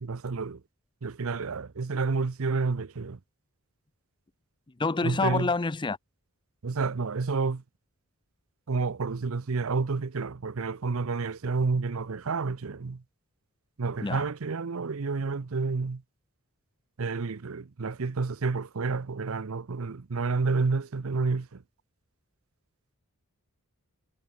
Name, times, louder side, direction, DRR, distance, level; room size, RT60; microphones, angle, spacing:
voice 1, 0.0-0.6 1.0-3.2 5.0-5.5 6.6-7.6 8.7-13.0 13.8-16.0 17.0-21.6, right 4 dB, 70° right, 0.7 m, -30 dB
voice 2, 4.8-6.0 14.0-14.2, left 3 dB, 20° left, 0.5 m, -27 dB
head